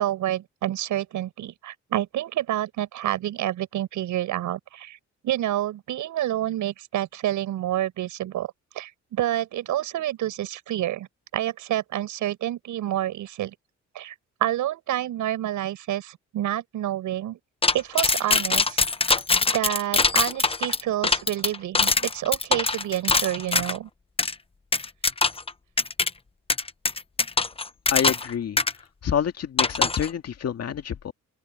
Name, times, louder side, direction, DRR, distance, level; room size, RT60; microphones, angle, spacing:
voice 1, 0.0-5.0 5.2-11.1 11.3-13.5 13.9-14.1 14.4-17.4 17.7-18.8 19.5-23.9, right 13 dB, 80° right, 6.5 m, -28 dB
sound 1, 17.6-23.8 24.2-24.3 24.7-25.5 25.8-26.1 26.5-28.3 28.6-28.7 29.6-30.1, left 3 dB, 20° left, 1.0 m, -22 dB
voice 2, 27.9-28.6 29.0-31.1, left 8 dB, 55° left, 2.1 m, -27 dB
open air
cardioid pair, 90°, 30 cm